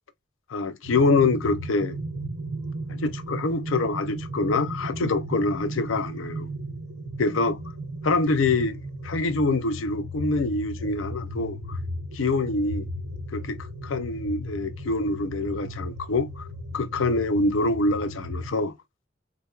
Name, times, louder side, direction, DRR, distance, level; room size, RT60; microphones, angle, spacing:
voice 1, 0.5-2.0 2.9-6.5 7.2-7.6 8.0-11.8 12.1-12.9 13.3-13.6 13.8-16.4 16.7-18.7, left 3 dB, 90° left, 0.6 m, -25 dB
sound 1, 0.8-18.5, right 1 dB, 75° right, 0.7 m, -35 dB
3.5 x 3.4 x 2.3 m
head